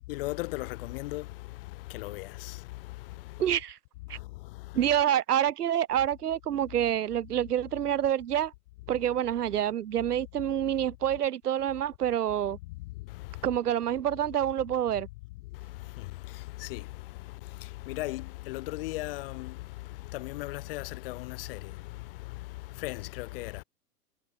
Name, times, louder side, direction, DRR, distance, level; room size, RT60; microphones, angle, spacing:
voice 1, 0.1-3.6 4.1-4.9 12.6-13.5 15.3-23.6, left 20 dB, 35° left, 1.0 m, -38 dB
voice 2, 3.4-3.8 4.1-4.2 4.7-8.5 8.9-12.6 13.4-15.1, right 10 dB, 75° right, 0.7 m, -27 dB
figure-of-eight pair, 110°, 47 cm